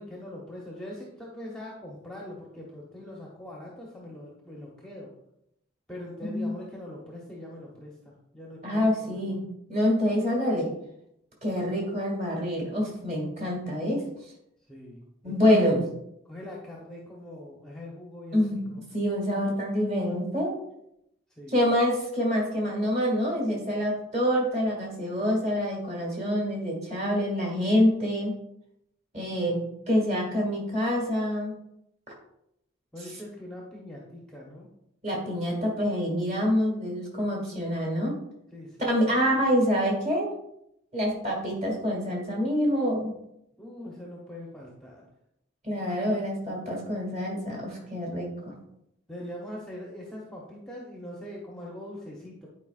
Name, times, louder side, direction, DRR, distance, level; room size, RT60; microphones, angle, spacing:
voice 1, 0.0-5.1 5.9-9.4 14.7-15.6 16.2-18.8 21.4-21.6 32.9-34.7 38.5-38.9 43.6-45.1 49.1-52.5, left 1 dB, 5° left, -3 dB, 0.9 m, -42 dB
voice 2, 8.6-9.4 9.7-10.7 11.4-14.0 15.2-15.8 18.3-20.5 21.5-28.3 29.1-31.5 35.0-38.1 38.8-40.3 40.9-43.1 45.6-48.5, equal, 35° right, -2 dB, 2.1 m, -26 dB
10.0 x 4.8 x 2.4 m, 0.79 s
head